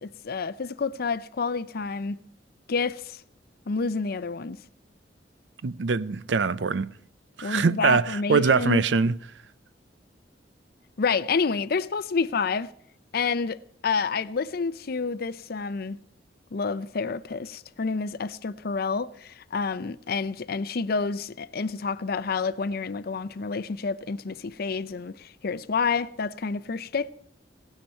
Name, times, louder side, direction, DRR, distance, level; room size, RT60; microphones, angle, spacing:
voice 1, 0.0-2.2 2.7-3.2 3.7-4.6 7.4-8.8 11.0-12.7 13.1-13.6 13.8-16.0 16.5-27.1, left 4 dB, 55° left, 0.6 m, -29 dB
voice 2, 5.6-6.9 7.4-9.2, right 5 dB, 80° right, 0.5 m, -23 dB
17.0 x 16.0 x 4.4 m
head